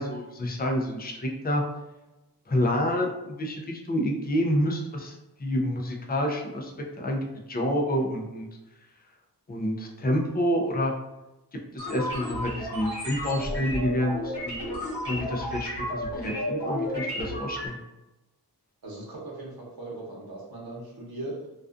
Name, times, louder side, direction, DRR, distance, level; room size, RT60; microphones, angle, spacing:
voice 1, 0.0-1.6 2.5-6.7 7.0-8.5 9.5-10.9 11.7-14.6 15.1-17.8, equal, 25° left, 1 dB, 0.4 m, -28 dB
sound 1, 11.8-17.7, equal, 80° left, 1.1 m, -32 dB
voice 2, 18.8-21.5, right 2 dB, 65° right, -3 dB, 0.8 m, -39 dB
2.3 x 2.3 x 2.5 m, 1.0 s
wide cardioid pair, 75°, 40 cm